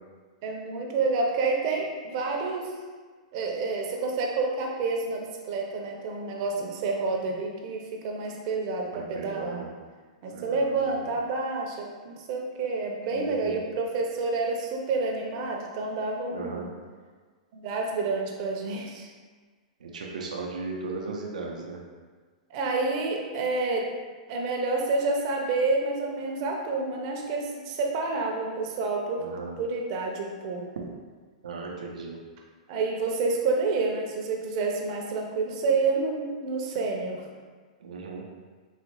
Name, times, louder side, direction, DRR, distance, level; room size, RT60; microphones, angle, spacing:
voice 1, 0.4-2.7 3.3-9.6 10.2-16.7 17.5-19.1 22.5-23.9 24.3-29.2 29.6-30.6 32.7-37.3, right 3 dB, 45° right, 0 dB, 0.6 m, -29 dB
voice 2, 8.9-9.7 10.3-11.0 13.1-13.6 16.3-16.7 19.8-21.8 29.2-29.5 31.4-32.2 37.8-38.3, right 3 dB, 90° right, -1 dB, 0.5 m, -37 dB
4.0 x 2.0 x 3.0 m, 1.5 s
hypercardioid pair, 135°, 4 cm